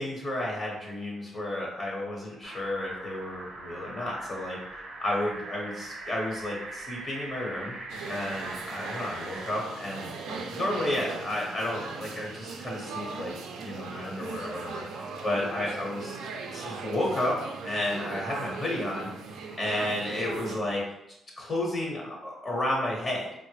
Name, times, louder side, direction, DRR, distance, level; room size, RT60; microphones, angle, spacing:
voice 1, 0.0-7.7 8.0-13.3 13.6-16.2 16.5-17.4 17.6-19.1 19.6-20.8 21.4-23.3, left 1 dB, 40° left, -3 dB, 1.0 m, -32 dB
sound 1, 2.4-9.7, right 2 dB, 50° right, 0.7 m, -41 dB
Coffee Shop Ambiance, 7.9-20.6, right 4 dB, 85° right, 0.4 m, -39 dB
4.4 x 2.0 x 3.2 m, 0.87 s
cardioid pair, 90°, 0 cm